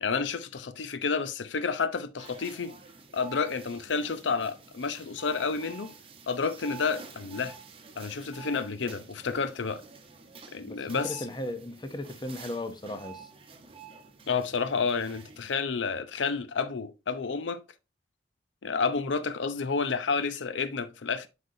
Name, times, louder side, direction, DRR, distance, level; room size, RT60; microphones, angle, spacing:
voice 1, 0.0-2.7 3.1-5.9 6.3-7.5 8.0-9.8 10.5-11.2 14.3-17.6 18.6-21.3, left 5 dB, 90° left, 0.6 m, -30 dB
sound 1, 2.2-15.6, right 6 dB, 30° right, 0.9 m, -49 dB
voice 2, 10.7-13.3, left 1 dB, 25° left, 0.6 m, -36 dB
7.9 x 5.1 x 2.6 m
head